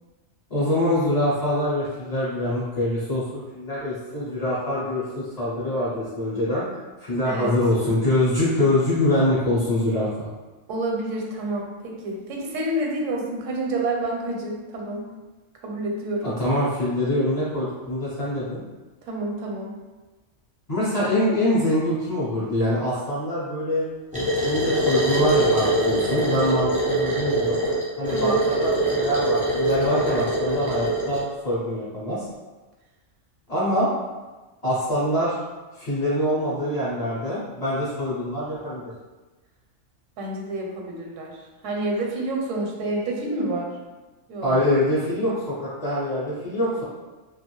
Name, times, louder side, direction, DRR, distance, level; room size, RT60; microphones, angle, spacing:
voice 1, 0.5-3.2 3.5-10.3 16.2-18.6 20.7-23.9 24.1-27.6 28.0-32.3 33.5-33.9 34.6-35.4 35.7-38.9 44.4-46.8, left 1 dB, 40° left, -9 dB, 0.6 m, -24 dB
voice 2, 10.7-15.1 15.6-16.3 19.0-19.8 28.1-28.4 40.2-43.7 44.3-44.6, right 1 dB, 80° right, -1 dB, 0.9 m, -28 dB
sound 1, 24.1-31.2, right 1 dB, 10° right, 0.4 m, -23 dB
2.4 x 2.3 x 3.0 m, 1.2 s
omnidirectional pair, 1.3 m